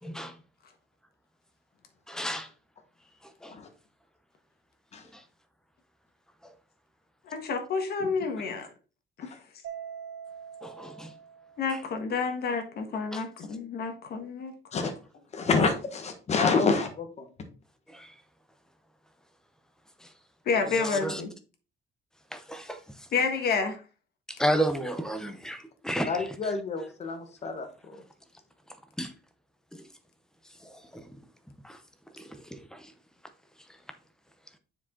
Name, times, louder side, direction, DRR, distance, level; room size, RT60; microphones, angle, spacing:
voice 1, 0.0-0.3 2.1-2.5 3.4-3.5 5.1-5.2 6.4-6.5 10.6-11.1 13.1-13.2 14.8-14.9 17.9-18.1 20.6-21.2 22.3-22.8 24.3-26.5 29.0-29.1 29.7-29.9 30.6-30.7 31.6-31.8 32.2-32.9, equal, 5° left, 0.7 m, -32 dB
voice 2, 7.3-8.7 9.2-9.3 11.6-14.9 20.4-21.3 23.1-23.8, left 5 dB, 50° left, 1.4 m, -29 dB
Mallet percussion, 9.6-12.1, right 8 dB, 85° right, 2.4 m, -44 dB
voice 3, 15.4-17.3 26.1-27.7, left 4 dB, 30° left, 1.2 m, -27 dB
6.9 x 4.9 x 3.7 m
cardioid pair, 175°, 21 cm